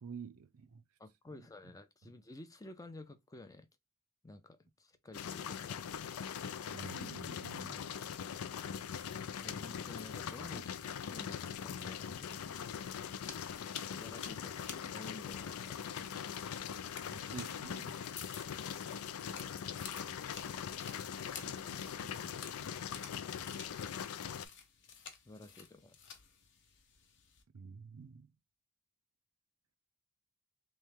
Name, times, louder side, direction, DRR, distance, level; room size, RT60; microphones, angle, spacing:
voice 1, 0.0-0.8 6.7-7.8 17.1-17.9 21.3-22.3 27.5-28.3, right 6 dB, 85° right, 0.5 m, -49 dB
voice 2, 1.0-3.7 4.2-5.9 9.4-12.4 13.8-16.1 19.3-19.9 25.3-26.0, left 2 dB, 15° left, 0.5 m, -52 dB
sound 1, 5.1-24.5, left 8 dB, 80° left, 0.4 m, -42 dB
sound 2, 12.3-27.4, left 6 dB, 55° left, 0.8 m, -53 dB
3.2 x 3.2 x 3.4 m
head